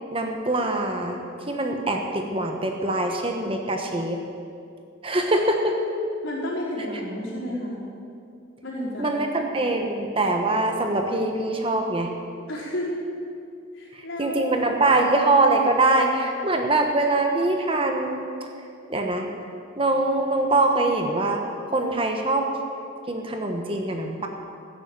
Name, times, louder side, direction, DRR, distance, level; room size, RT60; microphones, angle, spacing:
voice 1, 0.1-1.2 1.5-4.2 5.0-5.8 9.0-12.1 14.2-18.3 18.9-19.3 19.8-21.4 21.7-22.5 23.1-24.3, right 2 dB, 25° right, 3 dB, 1.1 m, -23 dB
voice 2, 6.2-7.8 8.6-9.3 12.5-13.0 13.7-14.5, left 1 dB, 65° left, -6 dB, 4.8 m, -31 dB
16.0 x 10.0 x 7.5 m, 2.5 s
head